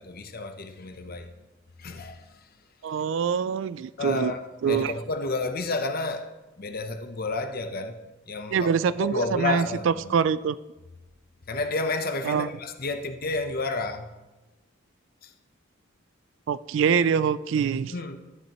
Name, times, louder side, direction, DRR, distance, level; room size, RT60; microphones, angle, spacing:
voice 1, 0.0-1.3 1.8-2.5 4.0-10.2 11.5-14.1 15.2-15.3 17.9-18.2, left 3 dB, 50° left, 0.8 m, -31 dB
voice 2, 2.8-4.3 4.6-4.9 8.5-10.6 12.3-12.5 16.5-17.9, right 7 dB, 65° right, 0.3 m, -24 dB
12.5 x 10.5 x 3.0 m
head